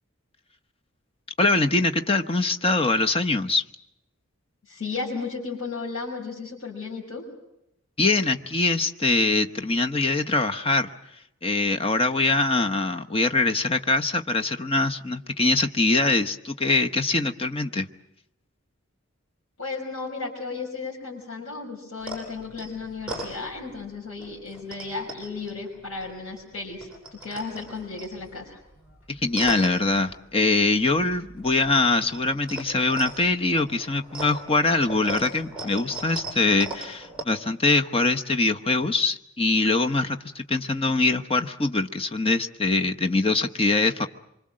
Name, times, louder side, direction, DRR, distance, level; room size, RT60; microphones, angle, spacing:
voice 1, 1.4-3.6 8.0-10.9 11.4-17.9 29.2-44.1, left 3 dB, 25° left, 6 dB, 1.0 m, -23 dB
voice 2, 4.7-7.2 19.6-28.6, left 4 dB, 70° left, -3 dB, 5.9 m, -34 dB
sound 1, 22.0-23.9 24.2-26.4 26.7-30.7 30.9-37.2, right 2 dB, 5° right, 6.5 m, -38 dB
26.0 x 24.5 x 7.6 m, 0.83 s
head